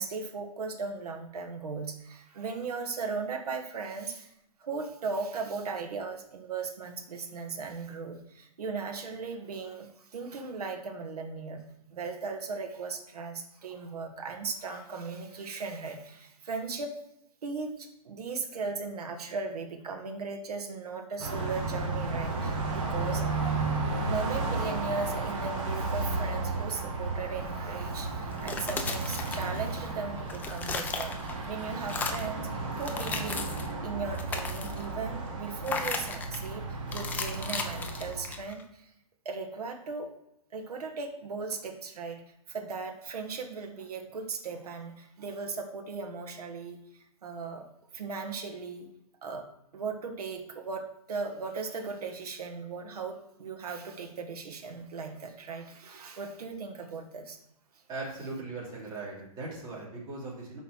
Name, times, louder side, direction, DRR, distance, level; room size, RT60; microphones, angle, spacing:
voice 1, 0.0-4.3 4.6-11.6 11.9-16.9 17.4-23.5 24.0-31.1 31.4-32.5 32.7-33.5 33.8-36.6 36.9-38.8 39.2-40.1 40.5-42.2 42.5-46.8 47.2-47.6 47.9-48.9 49.2-49.4 49.7-57.4, right 4 dB, 80° right, 4 dB, 1.7 m, -37 dB
Car passing by, 21.2-38.4, right 3 dB, 50° right, 2.5 m, -33 dB
sound 1, 28.3-29.9 30.2-31.5 31.8-32.4 32.8-33.7 34.1-34.9 35.6-36.5 36.9-38.6, left 4 dB, 10° left, 0.5 m, -36 dB
voice 2, 57.9-60.6, right 3 dB, 20° right, -6 dB, 3.3 m, -39 dB
6.0 x 5.5 x 6.3 m, 0.79 s
hypercardioid pair, 150°, 19 cm